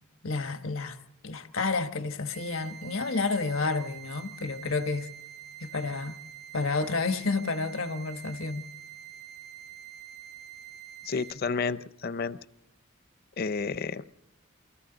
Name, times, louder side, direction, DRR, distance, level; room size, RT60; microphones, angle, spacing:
voice 1, 0.2-1.0 1.2-5.1 5.6-6.2 6.5-8.7, left 3 dB, 85° left, 1.3 m, -30 dB
sound 1, 2.3-11.3, right 10 dB, 85° right, 5.7 m, -46 dB
voice 2, 11.0-12.4 13.4-14.0, left 5 dB, 50° left, 0.6 m, -31 dB
28.5 x 25.0 x 4.0 m
head